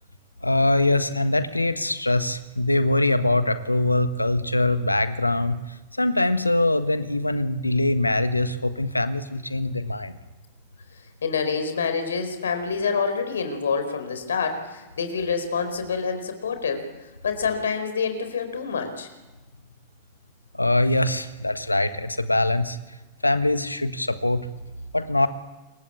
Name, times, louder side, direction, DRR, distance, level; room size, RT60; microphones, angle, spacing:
voice 1, 0.4-5.6 6.0-10.2 20.6-22.8 23.2-24.5 24.9-25.3, left 2 dB, 85° left, 11 dB, 1.5 m, -23 dB
voice 2, 11.2-16.8 17.2-19.1, left 5 dB, 70° left, 7 dB, 4.5 m, -27 dB
27.5 x 23.5 x 8.6 m, 1.1 s
figure-of-eight pair, 90°, 0 cm